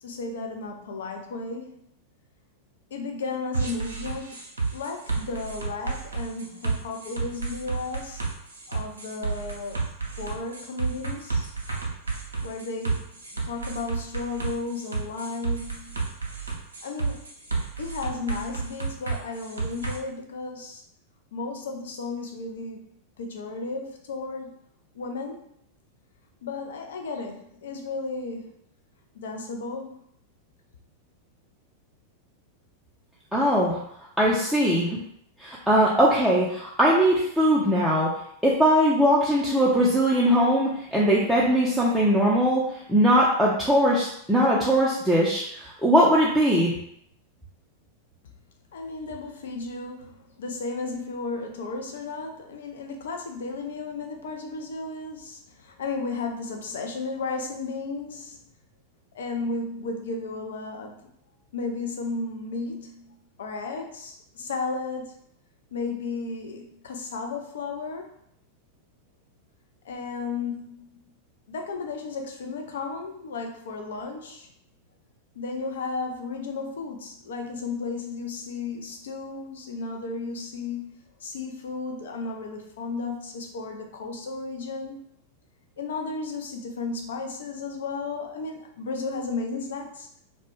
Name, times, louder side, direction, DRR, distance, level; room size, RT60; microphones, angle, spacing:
voice 1, 0.0-1.8 2.9-4.4 4.7-8.2 8.7-9.8 10.2-11.5 12.4-13.1 13.4-16.0 16.8-17.3 17.8-20.8 21.3-22.8 23.2-24.5 24.9-25.5 26.4-28.5 29.1-29.9 48.7-58.4 59.1-60.9 61.5-65.1 65.7-68.1 69.8-71.0 71.5-74.5 75.4-85.0 85.8-90.2, left 3 dB, 60° left, 2 dB, 0.4 m, -34 dB
sound 1, 3.5-20.0, right 4 dB, 75° right, 0.5 m, -31 dB
voice 2, 33.3-33.8 34.2-35.0 35.4-38.1 38.4-46.7, equal, ahead, -7 dB, 0.4 m, -21 dB
2.1 x 2.1 x 3.0 m, 0.71 s
figure-of-eight pair, 90°, 0 cm